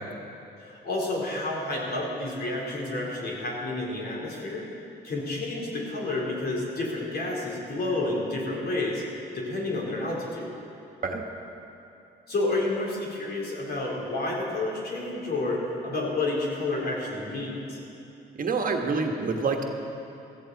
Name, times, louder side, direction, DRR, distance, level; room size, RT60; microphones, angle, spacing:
voice 1, 0.6-4.7 5.0-9.0 9.3-10.5 12.3-17.8, left 2 dB, 60° left, -3 dB, 3.6 m, -30 dB
voice 2, 18.4-19.6, right 4 dB, 50° right, 3 dB, 1.4 m, -27 dB
16.5 x 14.0 x 4.1 m, 2.8 s
cardioid pair, 70°, 18 cm